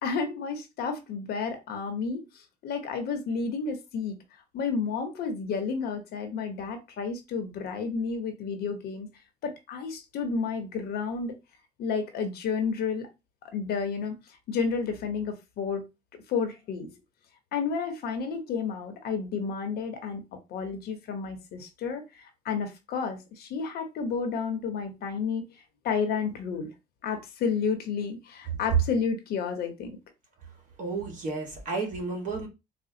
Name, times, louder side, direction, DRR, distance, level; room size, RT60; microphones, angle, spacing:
voice 1, 0.0-4.2 4.5-9.1 9.4-11.4 11.8-13.1 13.5-14.2 14.5-15.8 16.3-16.9 17.5-20.2 20.5-25.4 25.8-26.7 27.0-29.9, left 5 dB, 70° left, 0.9 m, -31 dB
voice 2, 30.8-32.5, right 3 dB, 50° right, 1.4 m, -32 dB
4.2 x 2.2 x 2.7 m
cardioid pair, 110°, 17 cm